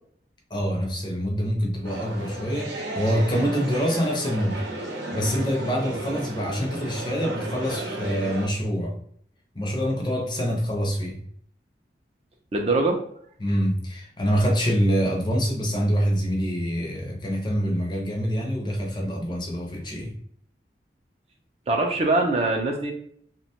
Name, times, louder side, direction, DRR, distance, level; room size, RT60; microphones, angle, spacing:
voice 1, 0.5-4.6 5.1-9.0 9.5-11.2 13.4-20.2, equal, 25° left, 0.5 m, -25 dB
sound 1, 1.8-8.5, right 2 dB, 85° right, 0.7 m, -34 dB
voice 2, 12.5-13.0 21.7-22.9, right 2 dB, 35° right, 0.4 m, -22 dB
2.8 x 2.2 x 2.8 m
head